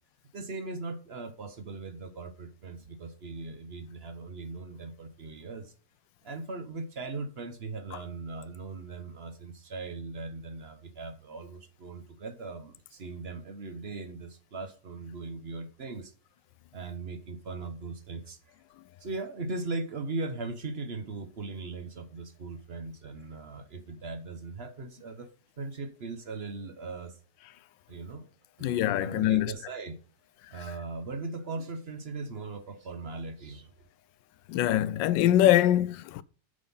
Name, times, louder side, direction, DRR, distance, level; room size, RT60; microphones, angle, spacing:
voice 1, 0.3-5.7 6.2-16.1 16.7-18.6 19.0-25.3 25.6-27.2 27.9-28.3 28.6-30.0 30.5-33.7, right 3 dB, 45° right, 0.8 m, -39 dB
voice 2, 28.6-29.5 34.5-36.2, left 13 dB, 85° left, 1.3 m, -23 dB
8.6 x 5.7 x 5.4 m
omnidirectional pair, 1.9 m